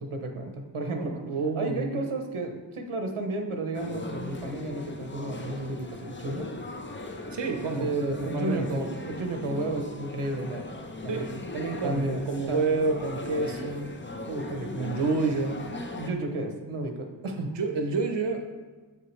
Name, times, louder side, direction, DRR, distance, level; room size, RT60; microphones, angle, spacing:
voice 1, 0.0-1.2 1.6-6.5 7.8-10.6 11.0-11.3 11.8-12.6 14.3-14.7 15.9-17.6, right 2 dB, 90° right, 4 dB, 0.9 m, -32 dB
voice 2, 1.0-2.0 7.3-7.9 8.2-8.8 11.1-14.0 14.7-15.6 17.6-18.4, right 3 dB, 60° right, 4 dB, 0.8 m, -29 dB
sound 1, 3.7-16.1, left 2 dB, 25° left, 0.5 m, -39 dB
7.4 x 6.3 x 3.1 m, 1.4 s
wide cardioid pair, 80°, 49 cm